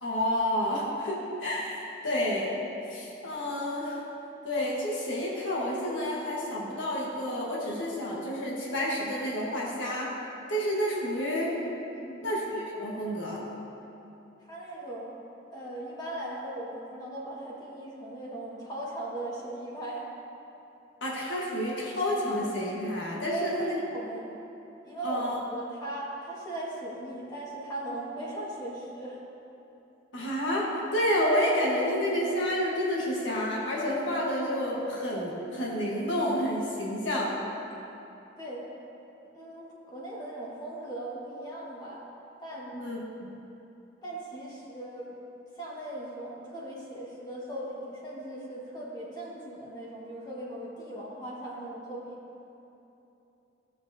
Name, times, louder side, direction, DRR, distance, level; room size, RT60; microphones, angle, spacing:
voice 1, 0.0-2.6 2.9-4.0 4.4-10.1 10.5-11.5 12.2-13.4 21.0-23.8 25.0-25.4 30.1-37.4 42.7-43.3, equal, 80° left, -4 dB, 1.3 m, -29 dB
voice 2, 14.4-15.2 15.5-20.0 23.3-24.3 24.8-29.2 38.4-38.6 39.3-42.0 42.4-42.8 44.0-45.1 45.5-52.2, right 1 dB, 20° left, -6 dB, 1.6 m, -38 dB
13.5 x 7.6 x 2.7 m, 2.9 s
head